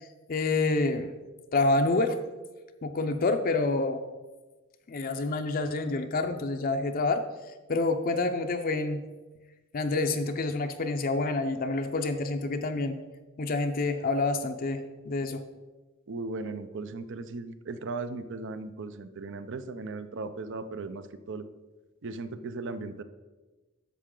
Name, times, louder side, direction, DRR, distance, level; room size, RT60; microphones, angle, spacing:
voice 1, 0.3-1.1 1.5-2.2 2.8-4.0 4.9-7.2 7.7-9.1 9.7-13.0 13.4-15.4, left 3 dB, 40° left, 6 dB, 0.5 m, -27 dB
voice 2, 16.1-21.4 22.0-23.0, right 3 dB, 60° right, 12 dB, 0.5 m, -37 dB
11.0 x 7.2 x 3.8 m, 1.2 s
head